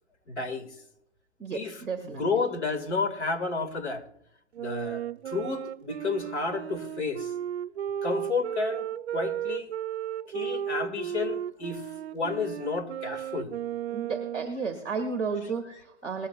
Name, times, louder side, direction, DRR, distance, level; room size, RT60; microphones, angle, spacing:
voice 1, 0.3-0.7 1.5-4.1 4.6-7.3 8.0-9.7 10.3-13.5, left 4 dB, 75° left, 2.1 m, -31 dB
voice 2, 1.4-2.2 13.9-16.3, right 5 dB, 5° left, 0.5 m, -33 dB
Wind instrument woodwind instrument, 4.5-14.6, right 10 dB, 70° right, 0.5 m, -34 dB
19.5 x 14.0 x 2.3 m
hypercardioid pair, 175°, 34 cm